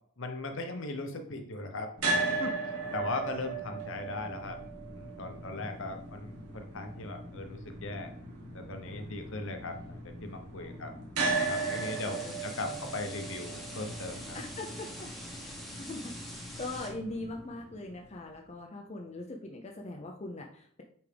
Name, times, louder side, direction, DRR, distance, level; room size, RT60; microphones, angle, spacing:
voice 1, 0.2-1.9 2.2-2.6 2.9-4.6 4.9-8.1 8.5-10.9 11.5-14.4, left 2 dB, 55° left, 5 dB, 0.9 m, -38 dB
sound 1, 2.0-18.1, right 3 dB, 85° right, 1.5 m, -37 dB
voice 2, 5.2-6.0 8.8-9.4 10.6-11.1 11.7-13.0 14.3-15.1 15.8-16.1 16.6-20.8, left 2 dB, 30° left, 1 dB, 0.5 m, -42 dB
sound 2, 11.2-16.9, equal, ahead, 1.0 m, -45 dB
8.4 x 3.5 x 3.4 m, 0.62 s
head